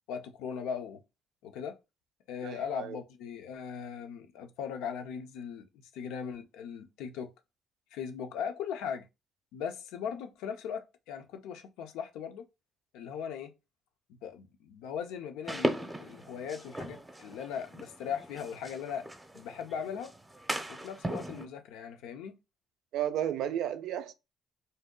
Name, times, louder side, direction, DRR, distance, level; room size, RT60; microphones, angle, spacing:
voice 1, 0.1-1.0 1.4-1.8 2.3-5.7 5.9-7.3 7.9-9.1 9.5-12.4 12.9-13.5 14.2-19.0 19.3-20.1 20.7-22.4, left 7 dB, 90° left, 0.5 m, -39 dB
voice 2, 2.4-3.0 22.9-24.1, right 10 dB, 80° right, 0.3 m, -33 dB
sound 1, 15.5-21.5, right 1 dB, 15° right, 0.6 m, -38 dB
2.6 x 2.2 x 3.6 m
cardioid pair, 80°, 0 cm